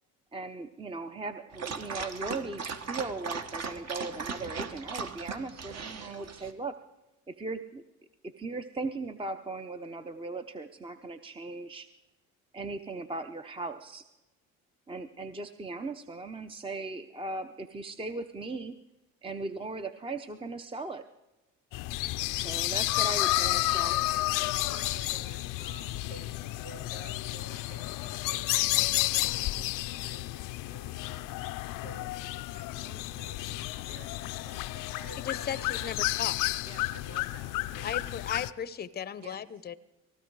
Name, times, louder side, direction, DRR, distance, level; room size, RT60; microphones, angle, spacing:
voice 1, 0.3-6.7 7.3-7.8 8.2-11.9 12.5-14.0 14.9-18.7 19.2-21.0 22.3-23.9, right 3 dB, 15° right, 9 dB, 0.7 m, -38 dB
Dog, 1.5-6.5, right 5 dB, 50° right, 1.5 m, -38 dB
sound 1, 21.7-38.5, left 18 dB, 70° left, 0.6 m, -31 dB
voice 2, 23.4-31.4 31.7-32.1 32.5-35.9 36.6-38.1 39.2-39.4, right 4 dB, 90° right, 4 dB, 2.4 m, -51 dB
voice 3, 35.2-36.4 37.8-39.7, left 8 dB, 30° left, 16 dB, 0.7 m, -36 dB
19.0 x 16.0 x 4.7 m, 1.0 s
cardioid pair, 90°, 33 cm